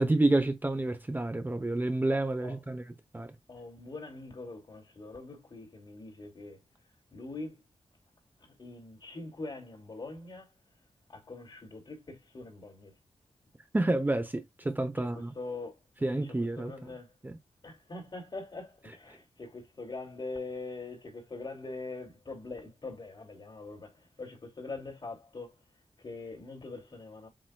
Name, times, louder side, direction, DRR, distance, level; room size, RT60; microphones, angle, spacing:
voice 1, 0.0-2.8 3.1-3.4 13.7-15.3 16.0-16.7 17.2-17.3, right 2 dB, 15° right, 0.8 m, -29 dB
voice 2, 3.5-6.6 7.1-7.6 8.4-10.5 11.1-12.9 15.0-15.8 16.1-17.1 17.6-25.6 26.0-27.3, left 3 dB, 45° left, 2.7 m, -43 dB
7.6 x 2.9 x 2.3 m
wide cardioid pair, 95°, 11 cm